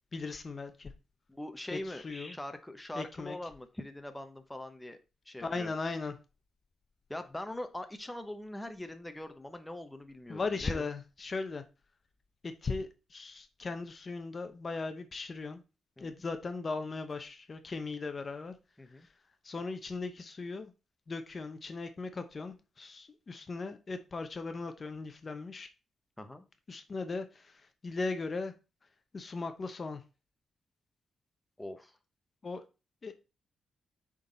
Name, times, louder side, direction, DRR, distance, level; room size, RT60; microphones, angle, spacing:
voice 1, 0.1-0.9 1.7-2.4 3.0-3.4 5.4-6.1 10.3-11.6 12.4-15.6 16.0-18.5 19.4-20.7 21.1-25.7 26.7-28.5 29.1-30.0 32.4-32.6 33.0-33.1, left 3 dB, 40° left, 8 dB, 0.8 m, -38 dB
voice 2, 1.3-5.0 5.3-5.7 7.1-10.9 16.0-16.2 18.8-19.1 26.2-26.4 31.6-32.0, left 1 dB, 10° left, 7 dB, 0.8 m, -42 dB
6.9 x 3.9 x 3.9 m, 0.30 s
cardioid pair, 85°, 0 cm